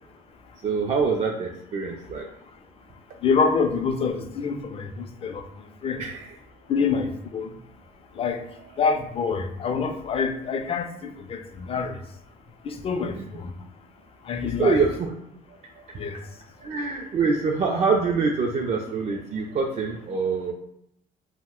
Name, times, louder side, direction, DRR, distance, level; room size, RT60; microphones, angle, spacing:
voice 1, 0.6-2.2 6.0-6.4 8.6-8.7 13.1-13.2 14.4-15.1 15.5-16.1 16.6-20.5, right 4 dB, 40° right, 1 dB, 0.4 m, -25 dB
voice 2, 3.2-5.4 5.8-6.0 6.7-7.5 8.2-8.4 8.8-12.0 12.6-13.5 14.3-14.8 16.0-16.2, left 5 dB, 35° left, 7 dB, 0.4 m, -26 dB
2.5 x 2.1 x 3.5 m, 0.76 s
cardioid pair, 110°, 17 cm